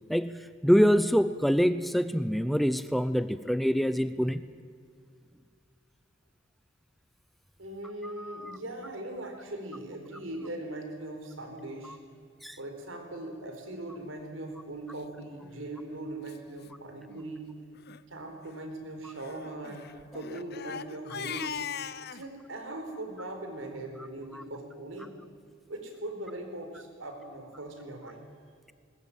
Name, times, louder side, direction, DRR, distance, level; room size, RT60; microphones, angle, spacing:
voice 1, 0.1-4.4 8.0-8.6 11.8-12.0 12.4-12.6 19.0-19.1 24.3-24.4, equal, ahead, 13 dB, 0.5 m, -26 dB
voice 2, 7.6-12.0 12.6-17.5 18.1-21.5 22.1-25.1 25.7-28.3, right 1 dB, 80° right, 4 dB, 4.4 m, -40 dB
Crying sobbing, 15.3-15.6 16.3-16.4 16.6-16.7 17.1-17.3 17.8-18.0 19.2-22.2, left 8 dB, 55° left, 0.7 m, -40 dB
20.5 x 20.0 x 9.0 m, 2.3 s
head